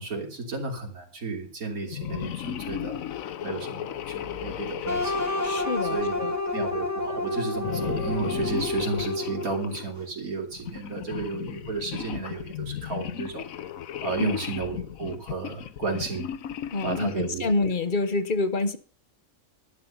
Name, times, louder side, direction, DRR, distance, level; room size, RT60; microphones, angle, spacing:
voice 1, 0.0-3.0 3.4-5.2 5.9-6.2 6.5-13.5 14.0-16.3 16.8-17.4, right 4 dB, 90° right, 3.5 m, -33 dB
sound 1, 1.9-6.7 7.6-9.9 10.5-17.4, left 10 dB, 75° left, 1.2 m, -35 dB
sound 2, 4.9-9.8, left 2 dB, 10° left, 1.7 m, -29 dB
voice 2, 5.4-6.4 14.2-14.3 16.7-18.8, left 3 dB, 40° left, 1.2 m, -27 dB
11.5 x 10.5 x 5.6 m
omnidirectional pair, 1.5 m